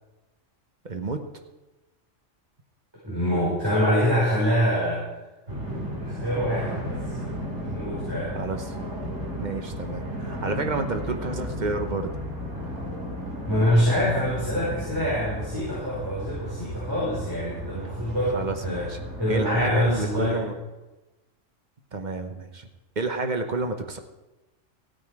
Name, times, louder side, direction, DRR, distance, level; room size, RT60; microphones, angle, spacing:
voice 1, 0.8-1.2 8.3-8.8 9.4-12.1 18.3-19.0 19.3-20.6 21.9-22.7 23.0-24.0, right 3 dB, 40° right, 6 dB, 1.0 m, -30 dB
voice 2, 3.0-5.0 6.0-7.0 7.6-8.4 13.5-18.9 19.2-20.4, equal, 20° right, -9 dB, 5.0 m, -25 dB
sound 1, 5.5-20.3, equal, 60° right, 3.2 m, -34 dB
15.5 x 9.1 x 4.8 m, 1.1 s
omnidirectional pair, 1.3 m